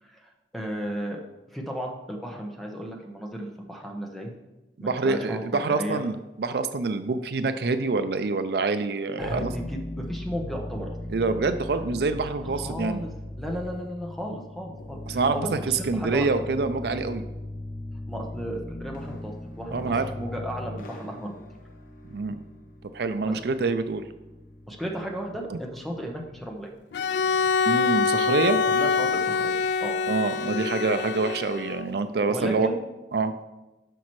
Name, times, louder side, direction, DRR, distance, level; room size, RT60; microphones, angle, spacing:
voice 1, 0.0-1.2 1.5-4.3 4.8-5.4 5.7-6.0 9.2-11.0 12.4-13.1 13.4-16.3 18.1-21.4 23.2-23.3 24.7-26.7 28.7-29.5 29.8-30.0 32.3-32.8, equal, ahead, 0 dB, 0.9 m, -34 dB
voice 2, 4.8-9.5 11.1-13.0 15.1-17.3 19.7-20.1 22.0-22.4 22.9-24.0 25.5-25.6 27.7-28.6 30.1-32.7 33.1-33.3, right 3 dB, 65° right, 10 dB, 0.4 m, -26 dB
sound 1, 9.2-26.6, left 1 dB, 50° left, 0.7 m, -39 dB
Bowed string instrument, 26.9-31.9, left 5 dB, 75° left, 0.3 m, -25 dB
11.5 x 5.9 x 3.2 m, 1.1 s
head